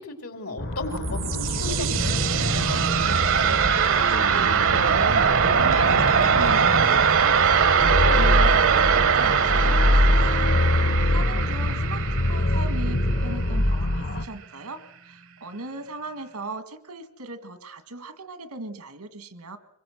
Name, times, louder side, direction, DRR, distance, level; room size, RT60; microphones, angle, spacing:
voice 1, 0.0-2.7 10.9-11.4, left 2 dB, 85° left, 5 dB, 3.4 m, -36 dB
sound 1, 0.6-14.2, left 1 dB, 55° left, 1.0 m, -25 dB
sound 2, 0.7-13.6, right 7 dB, 65° right, 0.8 m, -22 dB
voice 2, 3.3-3.7 4.1-7.4 7.8-10.5 10.8-19.6, right 2 dB, 90° right, 9 dB, 1.9 m, -38 dB
25.0 x 21.5 x 6.3 m, 0.72 s
head